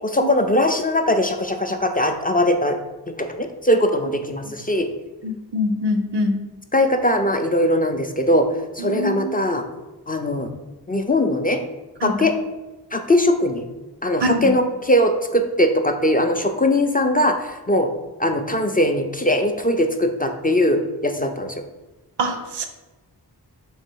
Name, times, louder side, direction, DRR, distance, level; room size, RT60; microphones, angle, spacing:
voice 1, 0.0-2.8 3.1-4.9 6.7-8.5 8.8-9.6 10.1-10.5 10.9-11.6 12.0-12.3 12.9-13.6 14.0-17.9 18.2-21.6, left 1 dB, 25° left, 5 dB, 0.3 m, -20 dB
voice 2, 5.2-6.4 8.8-9.4 12.0-12.2 14.2-14.5 22.2-22.7, left 1 dB, 85° right, 6 dB, 0.6 m, -24 dB
3.9 x 2.7 x 4.5 m, 1.1 s
wide cardioid pair, 55°, 41 cm